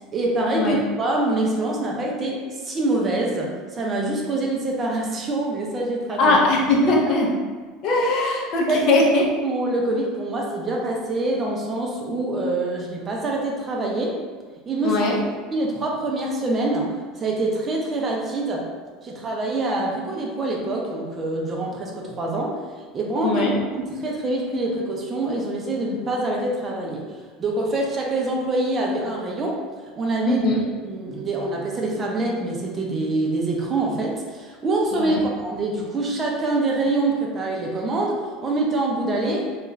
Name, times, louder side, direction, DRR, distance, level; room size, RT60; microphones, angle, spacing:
voice 1, 0.1-6.4 8.7-9.0 9.4-14.2 14.7-15.1 15.5-18.6 19.0-22.6 22.9-23.4 23.7-27.1 27.4-29.6 30.0-30.5 30.8-39.6, right 2 dB, 30° right, -1 dB, 0.5 m, -25 dB
voice 2, 6.2-7.3 7.8-9.2 14.8-15.2 23.2-23.6 30.2-30.6 34.9-35.2, left 2 dB, 50° left, -2 dB, 0.5 m, -20 dB
2.3 x 2.3 x 3.0 m, 1.4 s
supercardioid pair, 125°, 0 cm